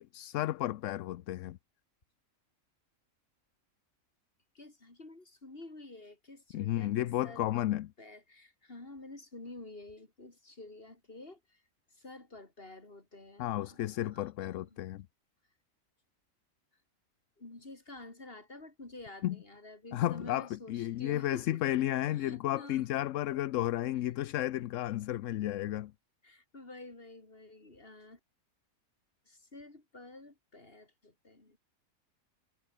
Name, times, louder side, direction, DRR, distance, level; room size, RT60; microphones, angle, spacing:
voice 1, 0.0-1.6 6.5-7.9 13.4-15.0 19.2-19.4 19.9-25.9, left 14 dB, 70° left, 0.9 m, -33 dB
voice 2, 4.5-7.7 8.0-11.6 11.9-14.8 17.4-21.6 22.1-22.8 26.2-28.2 29.3-31.6, left 2 dB, 40° left, 4.0 m, -50 dB
omnidirectional pair, 1.5 m